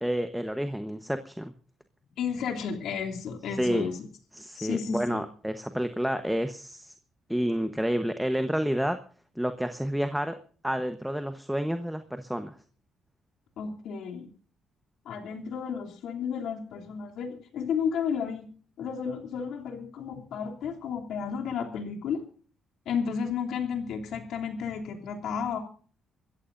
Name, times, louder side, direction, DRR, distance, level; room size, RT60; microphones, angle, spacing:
voice 1, 0.0-1.5 3.6-3.9 4.3-6.9 7.3-9.0 9.4-10.4 10.6-12.5, equal, 5° right, 8 dB, 1.1 m, -29 dB
voice 2, 2.2-4.0 4.6-5.2 13.6-14.3 15.0-18.5 18.8-22.2 22.8-25.6, left 6 dB, 80° left, 2 dB, 3.0 m, -32 dB
26.0 x 14.5 x 2.7 m, 0.42 s
cardioid pair, 90°, 0 cm